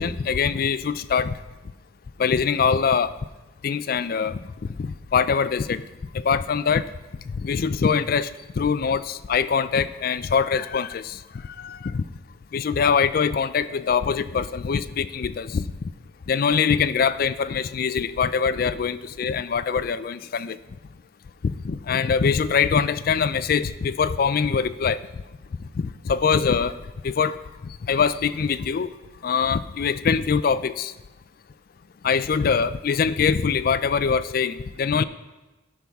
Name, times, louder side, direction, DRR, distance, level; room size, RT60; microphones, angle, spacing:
voice 1, 0.0-1.4 2.2-3.1 3.6-4.4 4.8-5.8 6.1-6.9 7.3-8.3 8.6-11.2 11.6-12.0 12.5-15.7 16.3-20.6 21.4-25.0 26.0-26.7 27.0-27.4 27.6-28.9 29.2-30.9 32.0-35.0, left 6 dB, 50° left, 15 dB, 0.3 m, -23 dB
16.5 x 6.0 x 3.5 m, 1.1 s
head